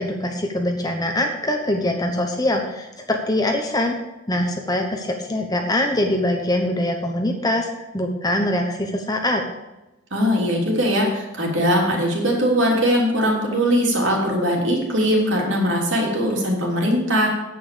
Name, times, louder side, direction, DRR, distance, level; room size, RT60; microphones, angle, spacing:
voice 1, 0.0-4.0 4.3-7.7 7.9-9.4, left 1 dB, 20° left, 3 dB, 1.0 m, -23 dB
voice 2, 10.1-17.3, equal, 60° right, -1 dB, 3.2 m, -20 dB
9.5 x 8.7 x 6.9 m, 1.0 s
head